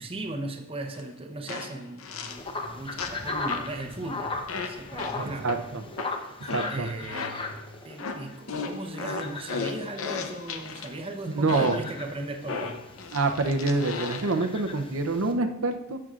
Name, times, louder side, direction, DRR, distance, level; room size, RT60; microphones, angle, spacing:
voice 1, 0.0-5.5 6.1-6.4 6.7-12.8, right 2 dB, 25° right, 4 dB, 0.7 m, -37 dB
sound 1, 0.9-1.0 1.5-2.5 3.0-3.8 4.5-7.6 8.0-10.9 11.5-11.9 12.5-14.4, left 5 dB, 80° left, 0.7 m, -36 dB
sound 2, 2.3-15.3, left 3 dB, 25° left, 0.7 m, -38 dB
voice 2, 5.2-5.8 6.5-6.9 11.3-11.7 13.1-16.0, right 3 dB, 80° right, 7 dB, 0.7 m, -26 dB
12.0 x 7.7 x 2.4 m, 0.85 s
head